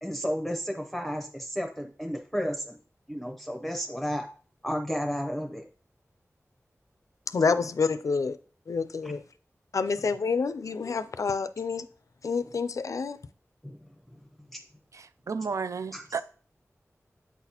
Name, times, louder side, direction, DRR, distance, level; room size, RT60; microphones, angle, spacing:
voice 1, 0.0-2.8 3.1-4.3 4.6-5.7 9.0-9.1 13.6-13.8 14.1-14.2 14.5-14.6 15.9-16.0, equal, 5° left, 0.7 m, -32 dB
voice 2, 7.3-8.4 8.7-9.2 9.7-11.9 12.2-13.2, left 5 dB, 80° left, 0.4 m, -28 dB
voice 3, 14.9-16.2, right 5 dB, 70° right, 0.3 m, -33 dB
8.2 x 4.0 x 2.9 m
wide cardioid pair, 80°, 5 cm